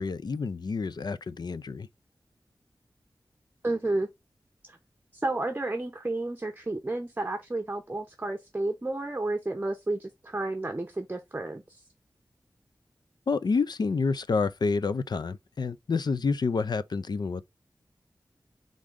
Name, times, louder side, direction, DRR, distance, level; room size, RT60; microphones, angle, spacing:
voice 1, 0.0-1.9 13.3-17.4, left 4 dB, 65° left, 0.4 m, -28 dB
voice 2, 3.6-4.1 4.7-4.8 5.1-11.8, right 2 dB, 25° right, 0.7 m, -31 dB
3.8 x 3.7 x 3.4 m
wide cardioid pair, 80°, 8 cm